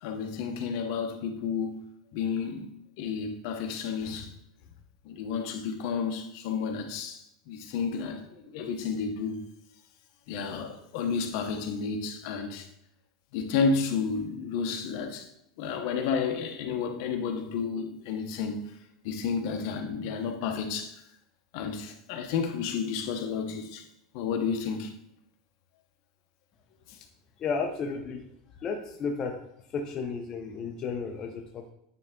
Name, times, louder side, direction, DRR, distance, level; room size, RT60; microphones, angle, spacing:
voice 1, 0.0-1.8 2.1-4.3 5.0-9.4 10.3-12.7 13.3-15.3 15.6-18.7 19.0-20.9 21.5-23.8 24.1-24.9, left 5 dB, 55° left, 0.9 m, -31 dB
voice 2, 27.4-28.2 28.6-29.4 29.7-31.7, left 5 dB, 25° left, 0.6 m, -33 dB
9.3 x 3.3 x 3.7 m
supercardioid pair, 160°, 2 cm